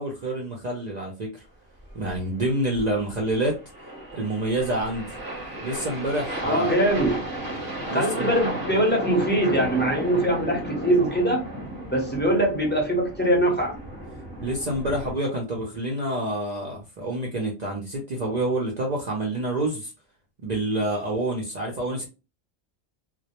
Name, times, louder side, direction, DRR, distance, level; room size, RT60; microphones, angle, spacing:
voice 1, 0.0-1.4 1.9-3.5 4.1-5.1 5.6-6.9 7.9-8.3 14.4-19.9 20.4-22.1, right 1 dB, 55° right, 0.4 m, -27 dB
sound 1, 1.8-15.1, right 1 dB, 20° right, 0.7 m, -35 dB
voice 2, 6.4-7.2 7.9-11.4 11.9-13.8, right 1 dB, 10° left, 0.5 m, -22 dB
2.1 x 2.0 x 2.8 m
omnidirectional pair, 1.2 m